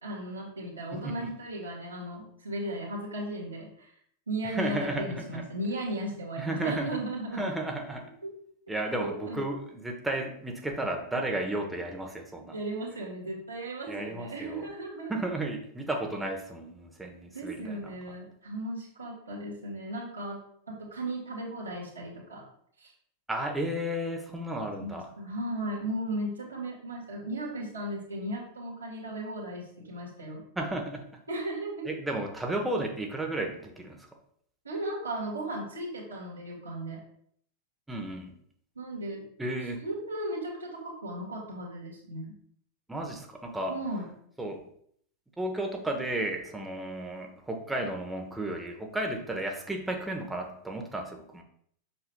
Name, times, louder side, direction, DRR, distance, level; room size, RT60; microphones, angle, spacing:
voice 1, 0.0-3.9 4.3-7.5 8.2-8.3 8.7-8.8 9.0-9.4 12.5-15.2 17.3-20.4 20.7-22.4 22.8-22.9 24.8-30.4 31.3-31.9 34.6-37.0 38.8-39.2 39.8-42.4 43.7-44.1, right 1 dB, 80° right, -5 dB, 1.9 m, -36 dB
voice 2, 0.9-1.3 4.4-5.4 6.4-7.0 7.3-8.1 8.7-12.5 13.9-14.7 15.1-17.9 23.3-25.1 30.6-31.1 31.8-34.0 37.9-38.3 39.4-39.8 42.9-43.8 44.4-44.6 45.4-51.4, right 1 dB, 5° right, 2 dB, 1.0 m, -33 dB
7.1 x 6.4 x 2.3 m, 0.65 s
figure-of-eight pair, 90°, 0 cm